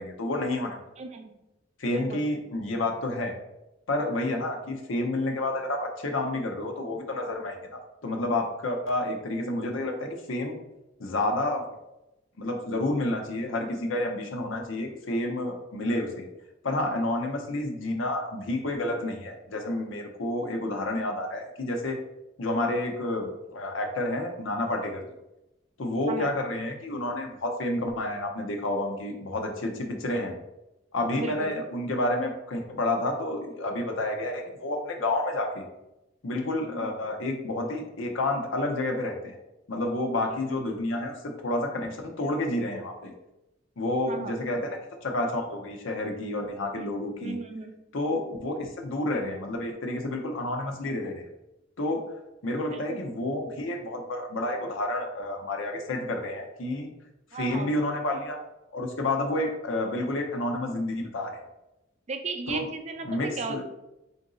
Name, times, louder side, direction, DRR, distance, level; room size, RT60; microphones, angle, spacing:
voice 1, 0.0-0.8 1.8-3.3 3.9-10.6 11.0-11.6 12.4-16.3 16.6-22.0 22.4-25.0 25.8-30.3 30.9-35.6 36.2-39.4 39.7-43.1 43.8-47.4 47.9-51.3 51.8-52.1 52.4-56.9 57.3-58.4 58.7-61.4 62.5-62.7 63.0-63.6, left 1 dB, 85° left, 3 dB, 0.7 m, -30 dB
voice 2, 1.0-1.3 1.9-2.2 26.1-26.3 31.2-31.5 36.7-36.9 44.1-44.3 47.2-47.7 52.7-53.0 57.3-57.7 62.1-63.6, right 3 dB, 35° right, 5 dB, 0.4 m, -35 dB
3.9 x 2.6 x 3.7 m, 0.93 s
head